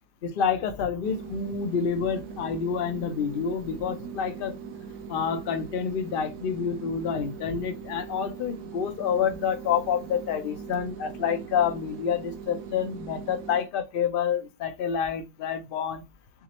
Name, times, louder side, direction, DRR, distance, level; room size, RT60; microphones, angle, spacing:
voice 1, 0.2-4.6 5.1-16.0, left 7 dB, 70° left, 0.5 m, -28 dB
sound 1, 1.0-13.7, right 6 dB, 80° right, 1.1 m, -41 dB
5.9 x 2.0 x 2.9 m
omnidirectional pair, 1.7 m